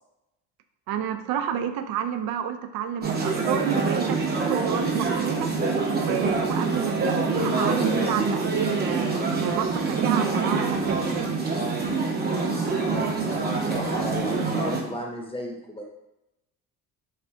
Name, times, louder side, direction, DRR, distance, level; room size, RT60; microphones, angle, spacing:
voice 1, 0.9-5.5 6.0-9.1 9.4-11.3, right 9 dB, 60° right, 8 dB, 0.5 m, -30 dB
sound 1, 3.0-14.8, right 4 dB, 25° right, 0.8 m, -25 dB
voice 2, 12.7-15.8, left 1 dB, 15° left, 0 dB, 0.8 m, -34 dB
3.3 x 2.5 x 3.5 m, 0.92 s
supercardioid pair, 75°, 40 cm